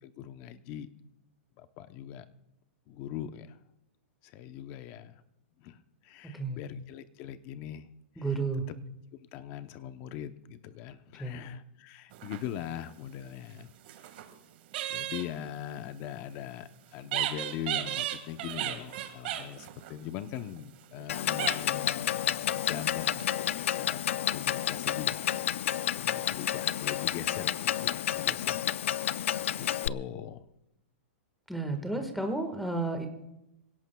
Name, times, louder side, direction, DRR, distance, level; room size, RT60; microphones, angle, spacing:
voice 1, 0.0-0.9 1.6-2.3 2.9-3.6 4.2-5.1 5.6-5.8 6.0-7.9 8.2-8.4 8.7-8.8 9.3-13.7 14.9-24.0 24.3-25.3 25.9-28.6 29.6-30.5 31.9-32.1 32.4-32.5, left 10 dB, 30° left, 11 dB, 0.8 m, -41 dB
voice 2, 8.2-8.7 11.2-11.4 31.5-33.1, right 3 dB, ahead, 6 dB, 1.6 m, -32 dB
sound 1, 12.1-12.9 13.6-14.3 14.7-15.3 17.0-21.1 21.4-21.9 22.5-23.4, right 13 dB, 50° right, 1.8 m, -36 dB
Clock, 21.1-29.9, left 11 dB, 75° left, 0.4 m, -30 dB
26.0 x 17.0 x 2.3 m, 0.89 s
supercardioid pair, 160°, 7 cm